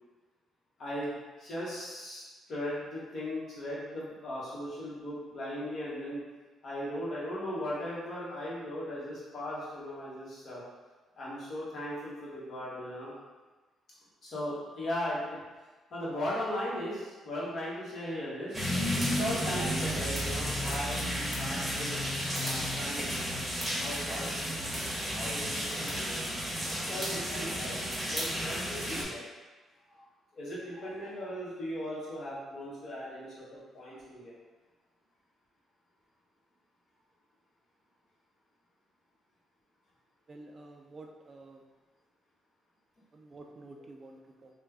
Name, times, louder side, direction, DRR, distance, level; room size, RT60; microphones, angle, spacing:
voice 1, 0.8-2.2 2.5-6.2 6.6-10.6 11.2-13.1 14.2-15.4 15.9-18.6 19.1-23.4 23.8-26.3 26.9-27.8 28.1-29.2 29.9-30.0 30.3-34.3, left 1 dB, 55° left, -8 dB, 1.3 m, -38 dB
sound 1, 18.5-29.0, equal, 5° right, 1.0 m, -32 dB
voice 2, 40.3-41.6 43.1-44.5, right 2 dB, 35° right, 2 dB, 0.4 m, -50 dB
3.2 x 2.2 x 3.4 m, 1.3 s
cardioid pair, 90°, 0 cm